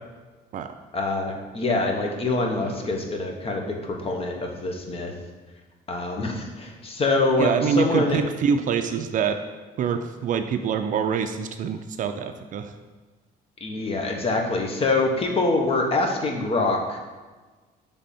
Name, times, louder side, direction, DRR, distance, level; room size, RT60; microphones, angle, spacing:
voice 1, 0.9-5.1 5.9-8.2 13.6-17.0, left 2 dB, 35° left, 2 dB, 1.0 m, -25 dB
voice 2, 7.4-9.4 9.8-12.7, right 6 dB, 50° right, 8 dB, 0.4 m, -25 dB
6.7 x 3.5 x 4.2 m, 1.3 s
cardioid pair, 110°, 17 cm